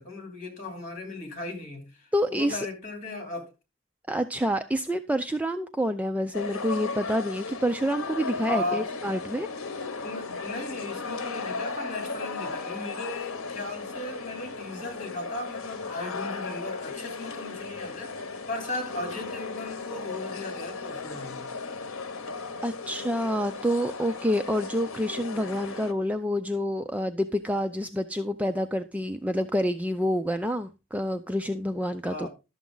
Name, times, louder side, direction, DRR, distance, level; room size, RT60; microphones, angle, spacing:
voice 1, 0.0-3.5 8.4-8.9 10.0-21.5 32.0-32.3, left 2 dB, 35° left, 3.6 m, -36 dB
voice 2, 2.1-2.7 4.1-9.5 22.6-32.3, equal, 5° right, 0.4 m, -28 dB
sound 1, 6.3-25.9, left 4 dB, 75° left, 1.0 m, -36 dB
12.0 x 7.2 x 3.9 m
head